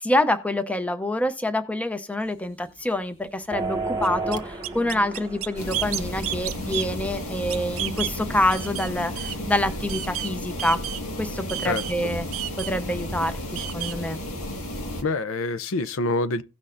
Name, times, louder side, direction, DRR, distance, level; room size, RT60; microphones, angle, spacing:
voice 1, 0.0-10.8 11.2-12.3 12.6-14.2, left 1 dB, 5° left, 0.6 m, -26 dB
sound 1, 2.3-2.4 2.8-2.9 3.3-3.4 4.0-8.2 8.5-10.3 10.6-11.2 11.5-14.0, right 13 dB, 70° right, 0.6 m, -32 dB
sound 2, 3.5-8.7, right 3 dB, 20° right, 1.1 m, -34 dB
sound 3, 5.6-15.0, left 1 dB, 85° left, 1.7 m, -33 dB
voice 2, 11.6-12.1 15.0-16.4, left 2 dB, 65° left, 0.6 m, -26 dB
16.5 x 6.3 x 2.5 m
head